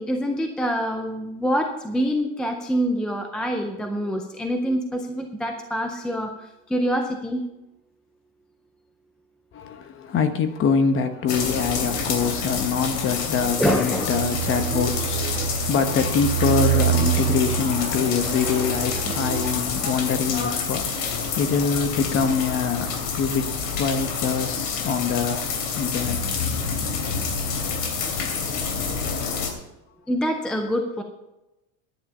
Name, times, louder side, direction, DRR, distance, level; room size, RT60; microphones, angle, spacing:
voice 1, 0.0-6.3 6.7-7.4 13.6-14.0 30.1-31.0, equal, ahead, 3 dB, 0.4 m, -25 dB
voice 2, 9.5-21.1 21.4-25.5 25.7-26.2, left 6 dB, 30° left, 9 dB, 1.1 m, -24 dB
sound 1, 11.3-29.5, left 5 dB, 75° left, 3.1 m, -28 dB
sound 2, 14.1-19.6, right 11 dB, 45° right, 1.8 m, -26 dB
11.0 x 10.5 x 5.5 m, 0.96 s
cardioid pair, 170°, 42 cm